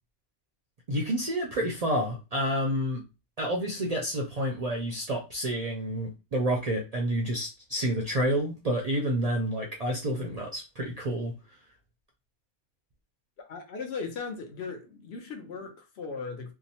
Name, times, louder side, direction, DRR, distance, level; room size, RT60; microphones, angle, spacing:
voice 1, 0.9-3.0 3.4-11.3, equal, 50° right, 0.4 m, -29 dB
voice 2, 13.5-16.5, left 5 dB, 65° left, 0.9 m, -37 dB
2.7 x 2.0 x 2.7 m
omnidirectional pair, 1.2 m